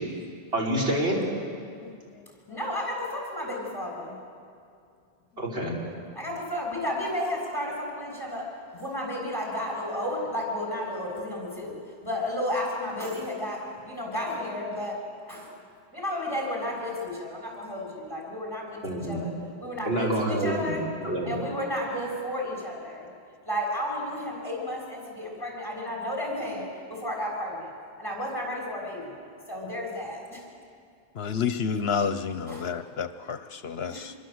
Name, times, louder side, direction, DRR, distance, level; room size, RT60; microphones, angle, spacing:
voice 1, 0.5-1.3 5.4-5.7 18.8-19.2 19.9-20.7 21.0-21.3, right 1 dB, 65° right, -3 dB, 5.2 m, -27 dB
voice 2, 2.5-4.2 6.2-15.0 15.3-15.5 15.9-19.3 19.6-20.8 21.3-23.1 23.4-27.7 28.0-29.2 29.5-30.5 32.5-32.7 33.9-34.1, left 1 dB, 20° left, -1 dB, 6.8 m, -32 dB
voice 3, 31.2-34.1, left 6 dB, 70° left, 11 dB, 1.0 m, -30 dB
26.5 x 22.5 x 7.9 m, 2.4 s
omnidirectional pair, 1.1 m